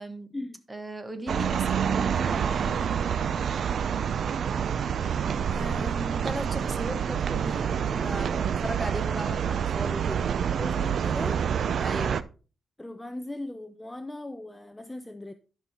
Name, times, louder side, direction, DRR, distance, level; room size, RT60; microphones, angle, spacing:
voice 1, 0.0-0.3 0.7-2.8 5.5-10.3 11.8-12.3, right 1 dB, 15° right, 8 dB, 1.4 m, -37 dB
sound 1, 1.3-12.2, right 7 dB, 60° right, 0.5 m, -27 dB
voice 2, 10.5-11.5 12.8-15.3, left 1 dB, 10° left, 9 dB, 0.6 m, -38 dB
11.5 x 5.6 x 4.3 m, 0.35 s
cardioid pair, 130°, 0 cm